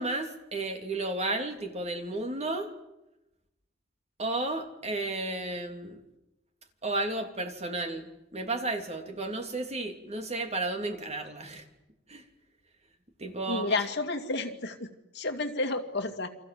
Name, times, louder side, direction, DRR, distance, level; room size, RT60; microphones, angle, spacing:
voice 1, 0.0-2.7 4.2-6.0 6.8-11.6 12.1-12.2 13.2-13.8, right 2 dB, 35° right, 5 dB, 3.0 m, -33 dB
voice 2, 13.5-14.9 15.1-16.3, left 2 dB, 60° left, 6 dB, 2.4 m, -31 dB
29.5 x 24.5 x 7.7 m, 0.94 s
head